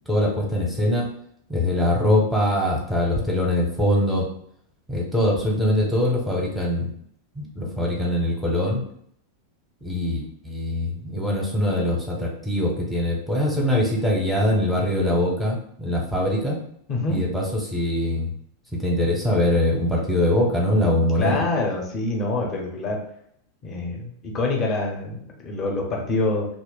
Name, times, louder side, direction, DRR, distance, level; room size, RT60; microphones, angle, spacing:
voice 1, 0.1-1.1 1.5-4.2 4.9-6.9 7.4-8.8 9.8-16.6 17.1-17.4 17.7-18.3 18.7-21.4, left 1 dB, ahead, -2 dB, 0.8 m, -22 dB
voice 2, 16.9-17.2 21.2-23.0 23.6-26.5, left 2 dB, 30° left, 0 dB, 0.8 m, -26 dB
2.5 x 2.0 x 3.8 m, 0.67 s
figure-of-eight pair, 90°, 0 cm